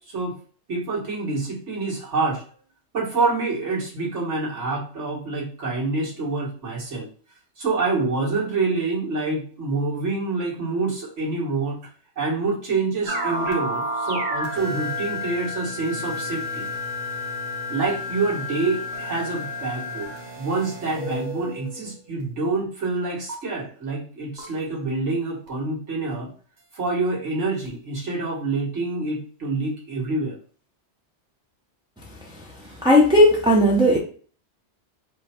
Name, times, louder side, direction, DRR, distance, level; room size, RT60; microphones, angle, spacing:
voice 1, 0.7-2.4 2.9-7.1 7.6-11.9 12.2-16.7 17.7-26.3 26.7-30.4 32.6-32.8, right 3 dB, 85° right, -4 dB, 1.8 m, -27 dB
sound 1, 13.1-21.9 23.3-23.4 24.4-24.5 25.5-25.6 27.7-27.8, left 1 dB, 40° right, 1.0 m, -31 dB
voice 2, 32.8-34.0, left 1 dB, 5° right, -3 dB, 0.4 m, -15 dB
4.9 x 2.2 x 4.2 m, 0.44 s
omnidirectional pair, 1.2 m